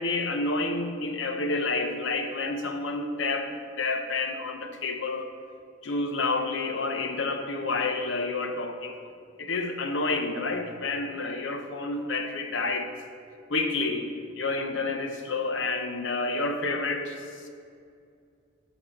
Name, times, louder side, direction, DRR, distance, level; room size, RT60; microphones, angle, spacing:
voice 1, 0.0-3.5 3.8-5.3 5.8-9.1 9.4-12.9 13.5-14.1 14.4-17.5, left 3 dB, 70° left, 6 dB, 0.8 m, -29 dB
10.5 x 4.3 x 7.1 m, 2.4 s
head